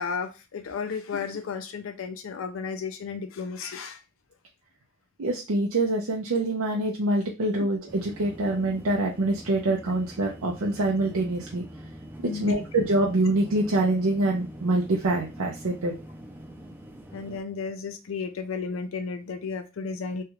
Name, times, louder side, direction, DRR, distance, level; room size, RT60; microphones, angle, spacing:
voice 1, 0.0-4.0 12.2-12.5 17.1-20.2, left 5 dB, 70° left, 7 dB, 0.4 m, -33 dB
voice 2, 5.2-11.6 12.2-15.9, right 2 dB, 85° right, -1 dB, 0.6 m, -25 dB
sound 1, 7.9-17.4, equal, 10° right, 0.4 m, -44 dB
3.1 x 2.3 x 3.0 m, 0.28 s
head